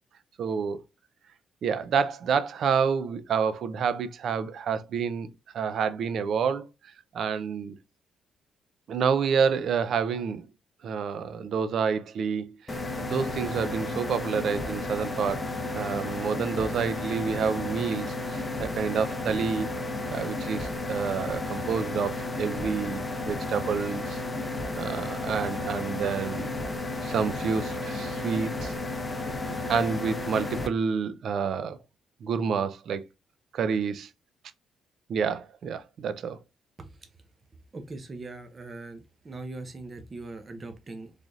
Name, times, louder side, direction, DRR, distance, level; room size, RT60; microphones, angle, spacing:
voice 1, 0.4-0.8 1.6-6.7 7.1-7.7 8.9-10.5 10.8-12.5 13.0-15.5 15.7-19.7 20.1-24.2 24.7-26.5 27.0-28.7 29.5-31.8 32.2-33.0 33.5-34.1 35.1-36.4, right 6 dB, 65° right, 0.5 m, -28 dB
sound 1, 12.7-30.7, left 2 dB, 20° left, 0.7 m, -33 dB
voice 2, 36.8-37.1 37.7-41.1, right 2 dB, 35° right, 0.7 m, -41 dB
3.8 x 3.3 x 2.3 m
cardioid pair, 90°, 0 cm